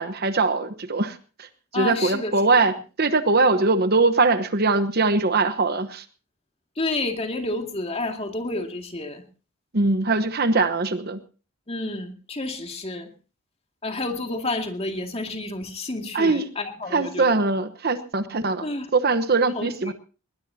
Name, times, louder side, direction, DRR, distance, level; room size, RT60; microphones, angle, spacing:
voice 1, 0.0-2.7 3.0-6.0 9.7-11.2 16.1-16.4 16.9-18.7 18.9-19.9, right 3 dB, 45° right, 12 dB, 1.1 m, -22 dB
voice 2, 1.7-2.3 6.8-9.2 11.7-13.1 13.8-17.4 18.6-18.9 19.6-19.9, left 2 dB, 30° left, 4 dB, 2.2 m, -30 dB
20.5 x 20.5 x 2.8 m, 0.35 s
head